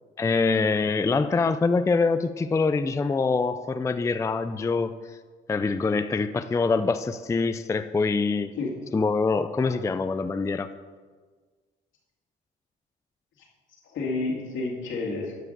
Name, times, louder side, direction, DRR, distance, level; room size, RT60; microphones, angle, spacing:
voice 1, 0.2-5.2 5.5-8.5 8.9-10.7, left 4 dB, 15° left, 11 dB, 0.3 m, -24 dB
voice 2, 8.6-9.3 9.6-9.7 13.4-13.5 13.8-15.3, left 3 dB, 75° left, -2 dB, 2.3 m, -31 dB
11.0 x 4.7 x 6.6 m, 1.5 s
cardioid pair, 90°, 20 cm